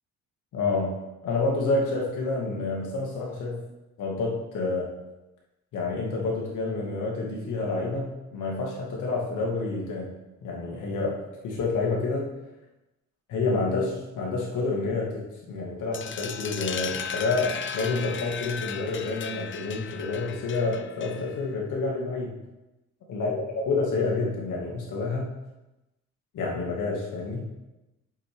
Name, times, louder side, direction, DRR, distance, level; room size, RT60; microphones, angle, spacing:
voice 1, 0.5-1.0 1.2-3.6 4.0-4.9 5.7-10.1 10.4-12.3 13.3-22.4 23.1-25.3 26.3-27.5, left 3 dB, 80° left, -2 dB, 2.2 m, -28 dB
sound 1, 15.9-21.5, left 7 dB, 40° left, 0.6 m, -36 dB
7.7 x 7.0 x 3.7 m, 0.99 s
cardioid pair, 90°, 30 cm